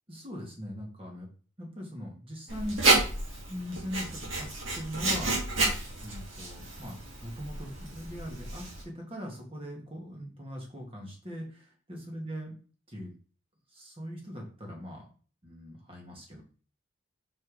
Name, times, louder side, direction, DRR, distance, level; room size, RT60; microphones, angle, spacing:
voice 1, 0.1-1.3 1.6-2.8 3.5-5.4 6.0-12.6 12.9-13.1 13.7-15.1 15.4-16.4, equal, 25° right, 0 dB, 1.8 m, -40 dB
Writing, 2.5-8.8, right 2 dB, 75° right, 2.7 m, -30 dB
5.8 x 4.4 x 4.9 m, 0.40 s
head